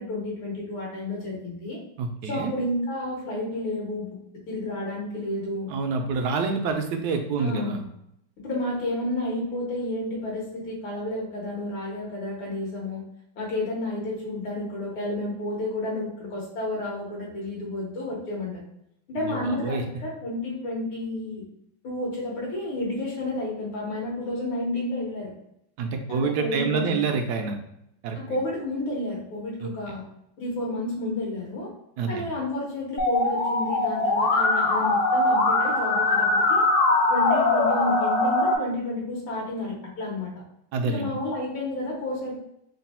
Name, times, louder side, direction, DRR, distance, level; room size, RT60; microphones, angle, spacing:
voice 1, 0.0-1.8 2.2-4.1 4.5-5.7 7.4-7.8 8.4-13.0 13.4-18.6 19.1-21.4 21.8-25.3 26.1-27.0 28.1-30.0 30.4-31.7 32.1-36.6 37.1-40.3 40.8-42.4, left 1 dB, 85° left, -4 dB, 1.9 m, -31 dB
voice 2, 2.0-2.5 5.7-7.8 19.2-19.8 25.8-27.6 28.0-28.2 29.6-29.7 32.0-32.2 40.7-41.1, right 4 dB, 75° right, 4 dB, 0.9 m, -27 dB
Musical instrument, 33.0-38.5, left 2 dB, 65° left, 0.7 m, -22 dB
3.9 x 2.2 x 4.2 m, 0.78 s
omnidirectional pair, 2.2 m